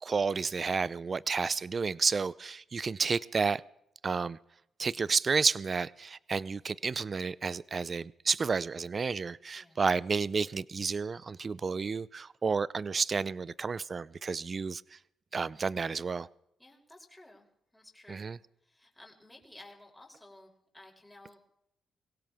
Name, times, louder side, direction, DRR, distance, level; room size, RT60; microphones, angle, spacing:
voice 1, 0.0-3.6 4.0-4.4 4.8-14.8 15.3-16.3 18.1-18.3, right 5 dB, 40° right, 0.5 m, -31 dB
voice 2, 16.6-18.3 18.6-21.5, left 1 dB, 5° left, 5.0 m, -55 dB
24.0 x 16.5 x 3.6 m
cardioid pair, 80°, 0 cm